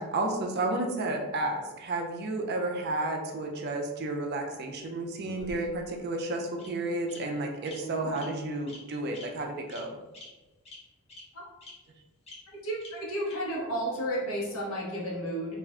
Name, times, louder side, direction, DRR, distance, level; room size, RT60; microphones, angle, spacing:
voice 1, 0.0-10.0, right 2 dB, 50° right, 2 dB, 0.4 m, -32 dB
Bird vocalization bird call bird song, 5.2-5.9 6.6-6.7 7.1-7.2 7.6-7.7 8.1-8.3 8.7-8.8 9.1-9.2 9.7-9.8 10.1-10.2 10.7-10.8 11.1-11.2 11.6-11.7 12.3-12.4 12.8-12.9 13.3-13.4, left 2 dB, 30° left, 0.6 m, -47 dB
voice 2, 7.8-8.2 11.3-11.5 12.6-15.6, right 1 dB, 85° left, -3 dB, 0.9 m, -33 dB
2.4 x 2.1 x 3.6 m, 1.1 s
head